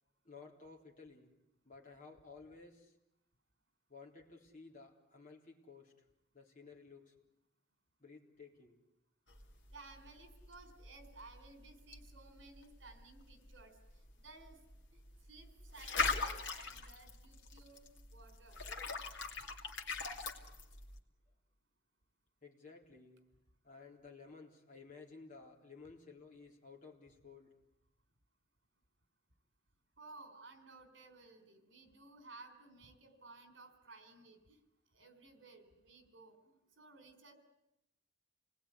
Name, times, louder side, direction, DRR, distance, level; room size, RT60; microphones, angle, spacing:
voice 1, 0.2-1.3 1.6-2.9 3.9-5.9 6.3-7.1 8.0-8.8 18.8-19.0 22.4-23.3 23.6-27.5, left 4 dB, 45° left, 0 dB, 3.9 m, -55 dB
sound 1, 9.3-21.0, left 4 dB, 65° left, 2.7 m, -42 dB
voice 2, 9.7-13.8 14.2-14.6 14.9-15.0 15.3-18.6 30.0-34.6 34.9-37.3, right 3 dB, 70° right, 8 dB, 4.2 m, -57 dB
28.5 x 19.5 x 9.9 m, 0.88 s
head